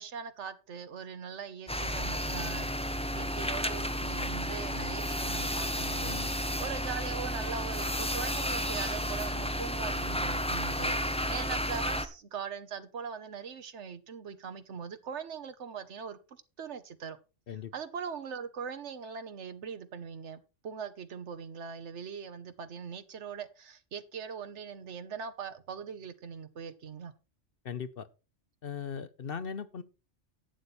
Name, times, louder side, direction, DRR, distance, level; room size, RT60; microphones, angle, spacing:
voice 1, 0.0-2.7 3.1-17.2 17.7-27.1, right 6 dB, 70° right, 1.4 m, -41 dB
sound 1, 1.7-12.1, equal, 5° left, 0.7 m, -32 dB
voice 2, 27.6-28.1 28.6-29.8, left 7 dB, 55° left, 0.9 m, -38 dB
11.5 x 8.4 x 4.2 m
omnidirectional pair, 1.3 m